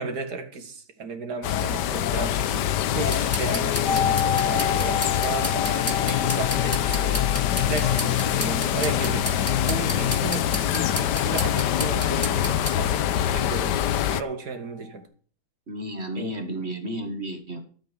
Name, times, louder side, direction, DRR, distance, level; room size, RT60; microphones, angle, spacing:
voice 1, 0.0-7.3 7.7-9.3 9.6-13.0 13.3-13.8 14.1-15.0 16.2-16.3, right 4 dB, 65° right, 2.4 m, -34 dB
sound 1, 1.4-14.2, left 11 dB, 80° left, 1.4 m, -24 dB
sound 2, 3.1-12.8, left 1 dB, 10° left, 1.7 m, -34 dB
sound 3, 3.8-13.6 13.9-14.0, left 7 dB, 30° left, 2.6 m, -32 dB
voice 2, 15.7-17.6, equal, 40° right, 1.9 m, -32 dB
13.5 x 7.8 x 5.3 m
omnidirectional pair, 1.8 m